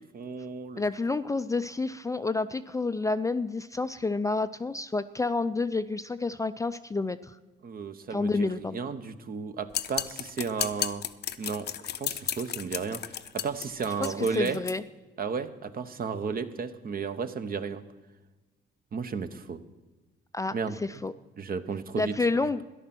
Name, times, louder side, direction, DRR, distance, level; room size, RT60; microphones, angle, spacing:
voice 1, 0.1-0.8 7.6-11.0 11.4-11.7 12.0-14.6 15.2-17.8 18.9-19.6 20.5-21.1 21.4-22.1, right 5 dB, 50° right, 10 dB, 1.0 m, -33 dB
voice 2, 0.8-7.4 8.1-8.8 14.0-14.8 20.3-20.5 20.8-21.1 22.0-22.6, left 3 dB, 15° left, 12 dB, 0.4 m, -29 dB
sound 1, 9.7-14.8, left 10 dB, 55° left, 0.6 m, -33 dB
13.0 x 11.0 x 6.1 m, 1.2 s
cardioid pair, 90°, 20 cm